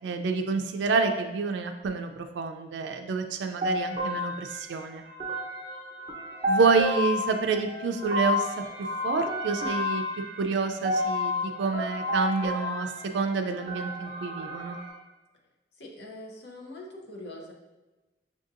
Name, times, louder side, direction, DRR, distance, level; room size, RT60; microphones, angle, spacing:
voice 1, 0.0-5.0 6.4-8.5 8.8-10.0 10.4-14.8, right 4 dB, 80° right, 6 dB, 0.4 m, -28 dB
sound 1, 3.6-14.9, left 2 dB, 30° right, 0.8 m, -31 dB
voice 2, 15.8-17.5, left 1 dB, 70° left, 0 dB, 0.7 m, -43 dB
5.7 x 2.7 x 2.5 m, 1.1 s
head